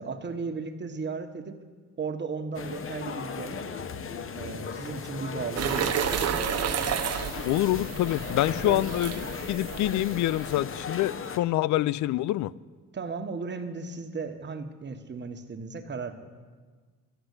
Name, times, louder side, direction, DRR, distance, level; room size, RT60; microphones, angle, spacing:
voice 1, 0.0-1.6 2.0-3.6 4.3-6.6 8.6-8.9 12.9-16.1, right 4 dB, 35° right, 6 dB, 1.3 m, -35 dB
sound 1, 2.5-11.4, left 6 dB, 45° left, 0.9 m, -36 dB
sound 2, 5.6-10.6, right 9 dB, 55° right, 1.0 m, -31 dB
voice 2, 7.4-9.1 9.5-12.5, left 15 dB, 70° left, 21 dB, 0.4 m, -26 dB
13.0 x 7.9 x 8.2 m, 1.5 s
cardioid pair, 90°, 30 cm